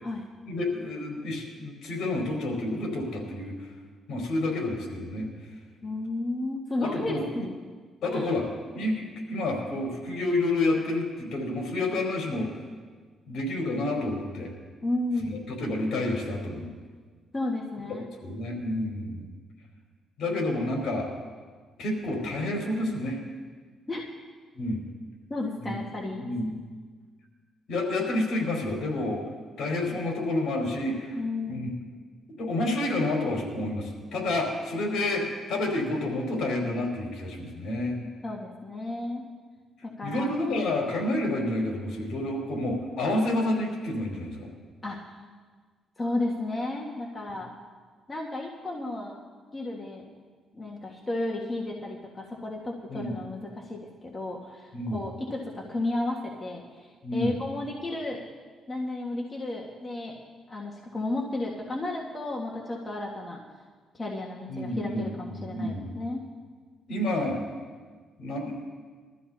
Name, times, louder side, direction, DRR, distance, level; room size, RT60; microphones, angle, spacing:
voice 1, 0.5-3.5 4.1-5.3 6.8-7.5 8.0-12.5 13.3-14.5 15.3-16.7 18.2-19.3 20.2-21.1 21.8-23.2 24.5-24.8 25.6-25.7 26.2-26.6 27.7-29.2 29.6-31.2 31.5-31.7 32.3-38.0 40.0-44.5 52.9-53.2 54.7-55.0 57.0-57.4 64.5-66.0 66.9-67.4 68.2-68.5, left 2 dB, 70° left, -2 dB, 4.8 m, -29 dB
voice 2, 5.8-7.2 8.1-8.3 14.8-15.4 17.3-18.1 23.9-24.0 25.3-26.2 31.2-31.7 38.2-39.2 39.8-40.4 44.8-45.0 46.0-47.5 48.1-49.2 49.5-50.1 50.5-58.2 58.7-60.2 60.5-63.4 63.9-66.2, left 2 dB, 25° left, -2 dB, 1.7 m, -33 dB
22.5 x 13.5 x 2.9 m, 1.5 s
cardioid pair, 90°, 0 cm